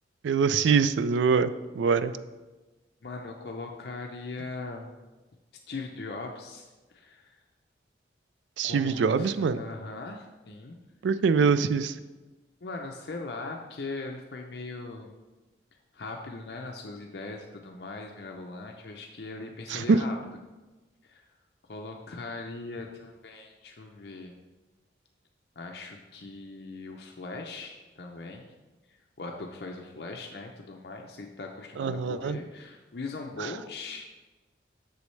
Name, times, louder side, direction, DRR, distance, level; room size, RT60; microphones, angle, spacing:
voice 1, 0.2-2.1 8.6-9.6 11.0-11.9 19.7-20.0 31.8-32.4, right 5 dB, 85° right, 14 dB, 0.3 m, -24 dB
voice 2, 3.0-4.9 5.7-6.7 6.9-7.4 8.6-10.8 12.6-15.1 15.9-20.2 21.0-21.2 21.6-24.3 25.6-28.5 29.2-34.1, left 3 dB, 60° left, 2 dB, 0.6 m, -40 dB
8.2 x 6.3 x 3.2 m, 1.2 s
head